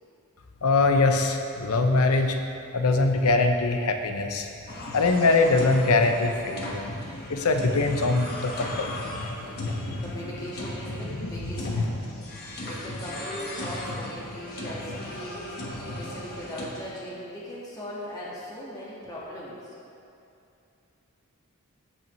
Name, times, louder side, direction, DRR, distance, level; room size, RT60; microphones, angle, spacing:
voice 1, 0.6-2.4 2.7-4.5 4.9-6.9 7.3-9.8 11.2-11.3 11.7-11.8, left 3 dB, 80° left, 5 dB, 0.7 m, -23 dB
sound 1, 4.7-16.7, left 1 dB, 50° left, 1.3 m, -36 dB
voice 2, 9.7-12.1 12.4-19.7, equal, 15° left, -8 dB, 1.7 m, -39 dB
15.5 x 5.5 x 3.1 m, 2.7 s
head